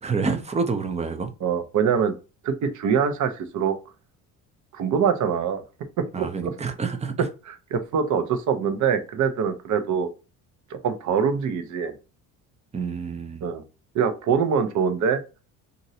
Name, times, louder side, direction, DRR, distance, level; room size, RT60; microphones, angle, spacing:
voice 1, 0.0-1.3 6.1-7.3 12.7-13.5, right 5 dB, 20° right, 0.5 m, -28 dB
voice 2, 1.4-2.2 2.4-3.8 4.7-5.6 6.0-6.5 7.2-10.1 10.7-11.9 13.4-13.6 13.9-15.2, right 7 dB, 50° right, 0.7 m, -24 dB
3.0 x 2.6 x 2.7 m
supercardioid pair, 95°, 37 cm